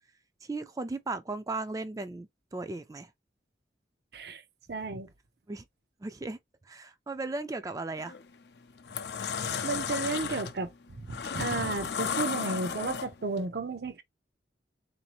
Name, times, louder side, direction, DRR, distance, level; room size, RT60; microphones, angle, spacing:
voice 1, 0.4-3.1 5.5-5.6 6.0-6.4 6.6-8.2, right 3 dB, 20° right, 0.4 m, -36 dB
voice 2, 4.7-5.1 9.6-14.0, right 3 dB, 65° right, 0.6 m, -33 dB
sound 1, 8.0-8.2 8.7-13.4, left 6 dB, 70° left, 0.5 m, -34 dB
3.9 x 2.6 x 2.9 m
head